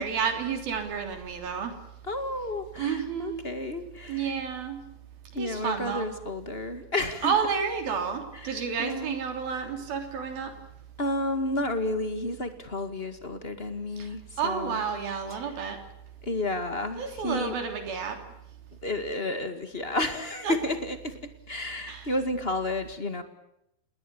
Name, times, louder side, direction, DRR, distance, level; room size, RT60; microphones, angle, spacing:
voice 1, 0.0-1.7 2.8-3.4 4.1-4.8 5.4-6.1 7.2-10.5 14.0-14.1 14.4-15.8 17.0-18.2 20.4-20.6 21.8-22.1, right 6 dB, 80° right, 6 dB, 5.1 m, -30 dB
voice 2, 2.0-4.3 5.3-7.3 8.3-9.2 11.0-14.8 15.3-15.5 16.2-17.5 18.8-21.2 21.5-23.2, left 1 dB, 25° left, 9 dB, 1.4 m, -31 dB
28.5 x 20.5 x 7.1 m, 0.80 s
omnidirectional pair, 4.2 m